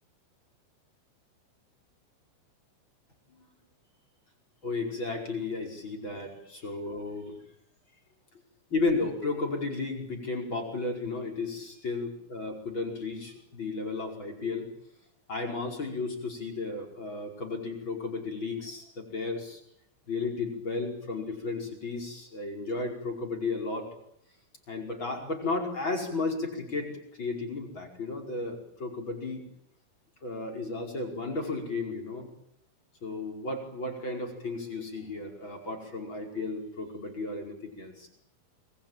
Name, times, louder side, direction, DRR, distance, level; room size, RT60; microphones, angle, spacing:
voice 1, 4.6-7.3 8.7-14.7 15.3-19.6 20.1-23.9 24.7-26.9 27.2-29.5 30.2-32.3 33.0-38.1, left 3 dB, 25° left, 2 dB, 5.3 m, -33 dB
27.5 x 21.5 x 9.1 m, 0.74 s
omnidirectional pair, 5.7 m